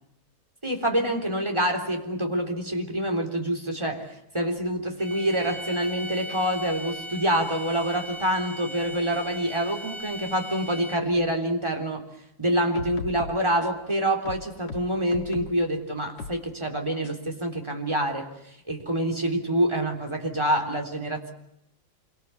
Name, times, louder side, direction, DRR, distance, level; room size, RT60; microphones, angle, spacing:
voice 1, 0.6-12.0 12.4-21.3, right 1 dB, 15° right, 2 dB, 3.8 m, -26 dB
sound 1, 5.0-11.2, equal, 65° right, 2.5 m, -39 dB
sound 2, 12.5-13.9 14.2-15.6 16.2-16.4 17.0-17.1, left 3 dB, 65° left, 2.4 m, -38 dB
27.0 x 24.0 x 8.4 m, 0.78 s
omnidirectional pair, 2.0 m